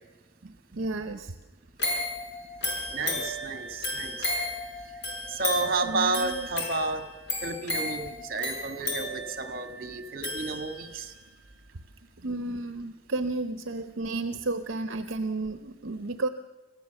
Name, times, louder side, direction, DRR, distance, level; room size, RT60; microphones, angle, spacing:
voice 1, 0.4-1.4 5.8-6.5 8.8-8.9 12.2-16.3, right 2 dB, 60° right, 8 dB, 0.9 m, -32 dB
sound 1, 1.8-11.1 11.5-11.6, left 2 dB, 60° left, 6.9 m, -34 dB
voice 2, 2.9-4.3 4.8-7.1 7.4-11.2, right 3 dB, 45° right, 7 dB, 1.7 m, -31 dB
25.5 x 15.5 x 7.0 m, 1.2 s
head